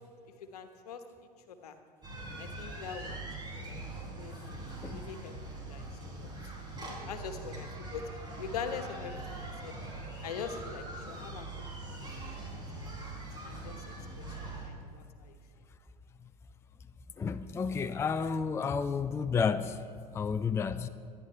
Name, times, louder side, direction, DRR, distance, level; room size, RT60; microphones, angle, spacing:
voice 1, 0.5-1.0 1.5-1.7 2.4-3.2 3.5-3.8 4.2-5.3 5.7-5.9 6.2-6.3 7.0-8.0 8.3-9.7 10.2-11.5 11.9-12.0 12.4-12.9 13.4-15.4, left 6 dB, 65° left, 8 dB, 1.3 m, -43 dB
sound 1, 2.0-14.7, right 2 dB, 20° right, 3.8 m, -42 dB
voice 2, 17.2-19.8 20.1-20.9, left 5 dB, 10° left, 12 dB, 0.4 m, -31 dB
25.0 x 11.0 x 3.4 m, 2.3 s
figure-of-eight pair, 75°, 21 cm